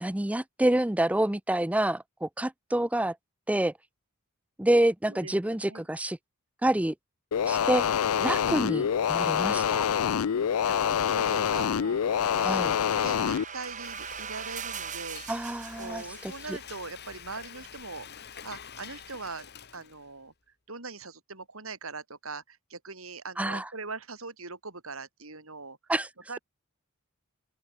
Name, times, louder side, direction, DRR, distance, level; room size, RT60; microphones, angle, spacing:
voice 1, 0.0-3.2 3.5-3.7 4.6-6.2 6.6-6.9 7.5-7.8 8.2-9.9 12.4-12.7 15.3-16.6 23.4-23.7 25.9-26.1, right 1 dB, 5° right, 0.5 m, -27 dB
voice 2, 5.1-5.8 10.7-12.0 12.3-15.2 15.8-18.1 18.4-19.5 19.7-20.3 20.7-25.8 26.3-26.4, right 3 dB, 70° right, 5.9 m, -41 dB
sound 1, 7.3-13.4, left 8 dB, 80° left, 0.4 m, -26 dB
sound 2, 11.6-16.7, right 7 dB, 35° right, 4.6 m, -41 dB
Frying (food), 13.1-20.2, left 7 dB, 50° left, 1.8 m, -47 dB
open air
head